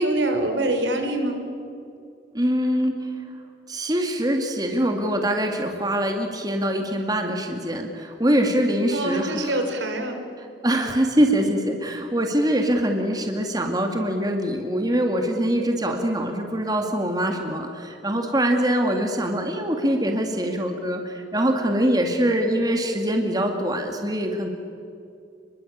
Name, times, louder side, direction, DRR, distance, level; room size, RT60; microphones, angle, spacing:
voice 1, 0.0-1.4 8.9-10.2, right 1 dB, 80° right, 4 dB, 4.3 m, -24 dB
voice 2, 2.3-3.1 3.7-9.6 10.6-24.5, equal, 20° right, 3 dB, 2.2 m, -23 dB
29.5 x 21.5 x 8.7 m, 2.5 s
head